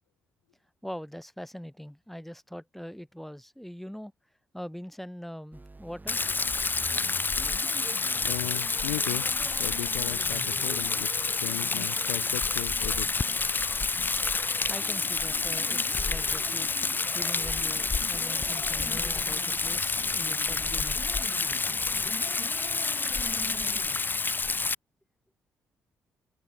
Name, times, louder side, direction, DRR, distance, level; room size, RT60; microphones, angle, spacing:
voice 1, 0.8-4.1 4.5-6.2 14.7-16.7 17.1-21.0 21.9-22.1, equal, 5° left, 4.3 m, -42 dB
sound 1, 5.5-24.0, right 3 dB, 25° right, 7.5 m, -46 dB
Rain, 6.1-24.7, left 4 dB, 25° left, 0.7 m, -29 dB
voice 2, 8.2-9.3 9.6-13.1 13.8-13.9, left 27 dB, 80° left, 1.2 m, -37 dB
figure-of-eight pair, 40°, 7 cm